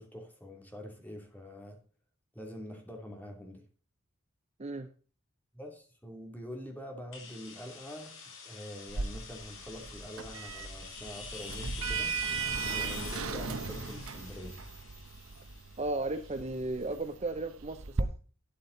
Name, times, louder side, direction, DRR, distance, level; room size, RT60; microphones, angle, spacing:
voice 1, 0.0-1.8 2.3-3.6 5.5-8.1 8.4-12.1 12.7-14.6, equal, 10° left, 2 dB, 2.8 m, -45 dB
sound 1, 7.1-16.7, left 5 dB, 65° left, 4.5 m, -46 dB
Sliding door, 8.9-18.0, right 4 dB, 85° right, 1.0 m, -37 dB
voice 2, 15.8-18.1, right 2 dB, 30° right, 9 dB, 0.7 m, -35 dB
12.5 x 8.5 x 3.9 m, 0.40 s
head